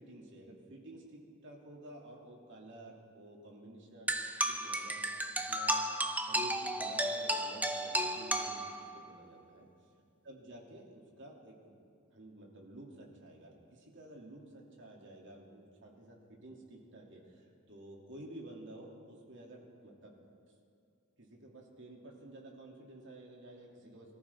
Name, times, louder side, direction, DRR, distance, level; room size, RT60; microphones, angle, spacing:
voice 1, 0.0-5.0 5.4-5.8 6.1-9.7 10.2-11.8 12.1-20.1 21.2-24.1, right 1 dB, 60° right, -1 dB, 2.8 m, -52 dB
sound 1, 4.1-9.1, right 1 dB, 10° right, 0.7 m, -34 dB
24.5 x 14.0 x 3.6 m, 2.3 s
head